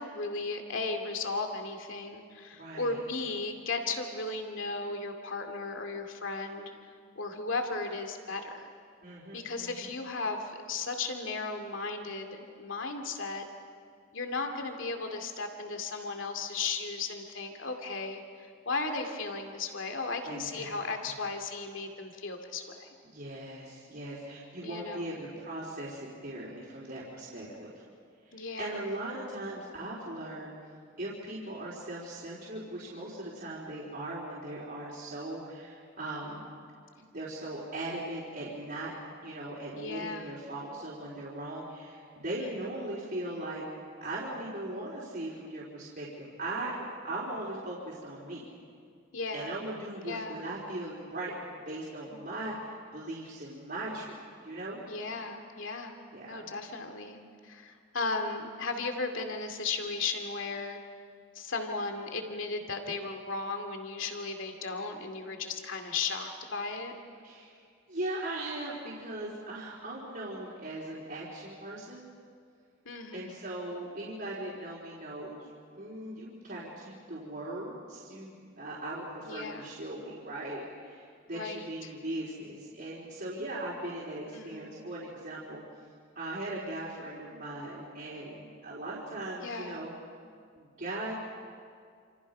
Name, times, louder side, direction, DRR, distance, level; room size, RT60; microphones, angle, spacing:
voice 1, 0.0-6.7 7.2-8.7 9.3-13.5 14.1-22.9 24.6-25.2 28.3-28.9 39.8-40.4 42.4-42.8 49.1-49.6 50.1-50.4 54.9-56.0 56.2-60.8 61.3-66.9 72.8-73.4 79.3-79.7 81.3-81.9 84.3-84.8 89.4-89.9, left 3 dB, 70° left, 5 dB, 2.5 m, -36 dB
voice 2, 2.5-3.0 9.0-9.9 20.2-21.2 23.0-27.8 28.2-30.5 31.0-36.5 37.1-38.9 39.2-43.6 44.0-48.5 49.3-51.3 51.7-54.8 56.1-56.5 67.2-67.6 67.9-72.1 73.1-75.5 75.8-85.6 86.2-89.9 90.6-91.1, right 1 dB, 50° right, -7 dB, 4.1 m, -39 dB
29.0 x 27.5 x 5.5 m, 2.2 s
head